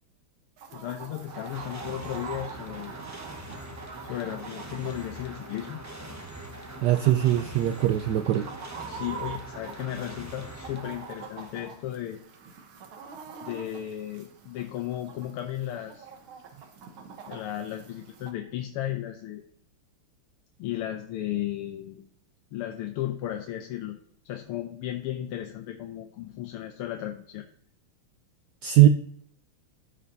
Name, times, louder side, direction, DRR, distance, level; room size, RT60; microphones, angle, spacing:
Chicken rooster, 0.6-18.3, right 6 dB, 75° right, 1.9 m, -45 dB
voice 1, 0.7-3.0 4.0-5.8 8.9-12.2 13.4-16.1 17.2-19.4 20.6-22.0 22.5-24.0 24.2-27.5, left 12 dB, 90° left, 5 dB, 1.6 m, -35 dB
sound 1, 1.0-11.8, right 1 dB, 20° right, 0.5 m, -43 dB
voice 2, 6.8-8.5 28.6-28.9, right 14 dB, 90° right, 8 dB, 0.9 m, -20 dB
14.0 x 5.1 x 2.7 m, 0.68 s
omnidirectional pair, 2.4 m